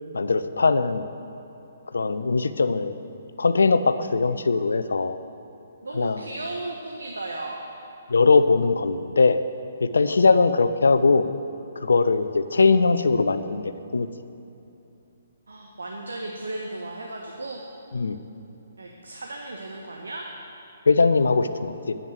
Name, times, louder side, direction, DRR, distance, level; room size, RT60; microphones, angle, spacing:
voice 1, 0.1-1.0 1.9-2.9 3.4-5.2 5.9-6.2 8.1-9.4 9.8-11.3 11.8-14.1 17.9-18.2 20.9-21.9, left 4 dB, 70° left, 11 dB, 0.6 m, -20 dB
voice 2, 5.8-7.7 15.5-17.6 18.8-20.3, right 2 dB, 75° right, 0 dB, 1.2 m, -35 dB
10.5 x 8.2 x 7.5 m, 2.8 s
figure-of-eight pair, 130°, 0 cm